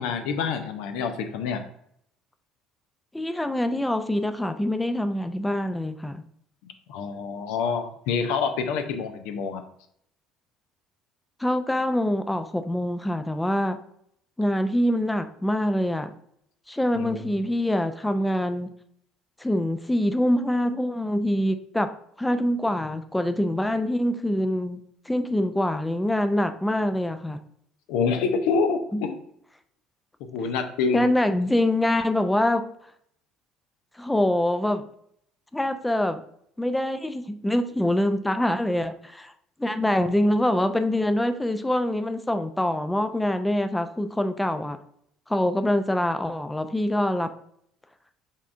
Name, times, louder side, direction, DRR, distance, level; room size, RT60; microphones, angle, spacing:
voice 1, 0.0-1.6 6.9-9.6 16.9-17.3 27.9-29.2 30.3-31.0, left 5 dB, 65° left, 6 dB, 0.5 m, -27 dB
voice 2, 3.1-6.2 11.4-13.8 14.4-16.1 16.7-18.7 19.4-21.9 22.2-27.4 28.9-29.0 30.9-32.6 34.0-34.8 35.5-36.2 36.6-39.3 39.6-44.8 45.3-47.3, left 1 dB, 10° left, 8 dB, 0.4 m, -25 dB
5.5 x 3.6 x 2.5 m, 0.70 s
figure-of-eight pair, 55°, 0 cm